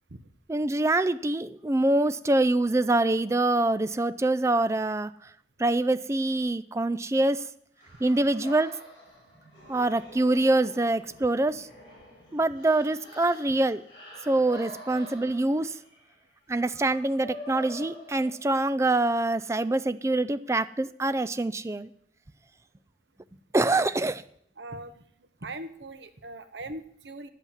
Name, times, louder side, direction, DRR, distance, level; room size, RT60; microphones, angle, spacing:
voice 1, 0.5-5.1 5.6-7.4 8.0-8.7 9.7-11.7 12.3-13.8 14.3-15.8 16.5-21.9 23.5-24.2, right 2 dB, 15° right, 13 dB, 0.4 m, -25 dB
sound 1, 7.8-18.8, left 1 dB, 25° left, 5.6 m, -46 dB
voice 2, 24.6-25.0 25.4-27.3, right 2 dB, 75° right, 9 dB, 1.0 m, -40 dB
11.0 x 8.2 x 7.2 m, 0.68 s
head